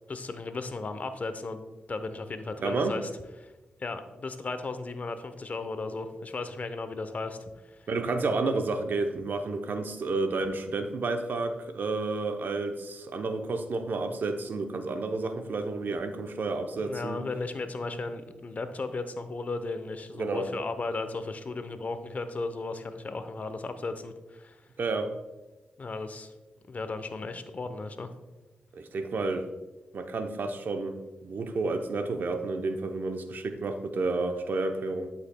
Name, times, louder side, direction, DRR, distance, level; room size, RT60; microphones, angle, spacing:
voice 1, 0.1-3.1 3.4-3.5 3.8-7.9 8.4-8.6 16.8-24.6 25.8-26.3 26.7-28.1, left 3 dB, 45° left, 10 dB, 0.7 m, -35 dB
voice 2, 2.6-3.0 7.9-17.2 20.2-20.5 24.8-25.1 28.7-29.5 29.9-35.1, right 3 dB, 65° right, 6 dB, 0.7 m, -30 dB
11.0 x 5.7 x 2.2 m, 1.1 s
cardioid pair, 55°, 3 cm